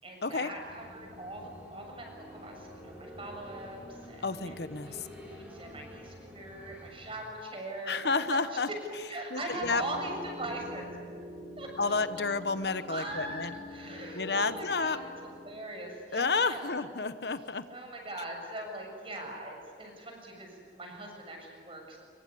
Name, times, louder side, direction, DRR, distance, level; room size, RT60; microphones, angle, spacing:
voice 1, 0.0-8.6 9.1-10.9 11.6-11.7 12.9-16.8 17.7-22.0, right 1 dB, 30° right, 2 dB, 7.1 m, -41 dB
sound 1, 0.5-7.2, equal, 10° right, 6.9 m, -49 dB
voice 2, 4.2-5.0 7.9-8.7 9.3-9.8 11.8-13.5 14.2-15.0 16.1-17.6, left 4 dB, 65° left, 12 dB, 1.0 m, -30 dB
sound 2, 9.6-15.5, left 1 dB, 55° right, 5.0 m, -46 dB
25.0 x 23.5 x 10.0 m, 2.2 s
head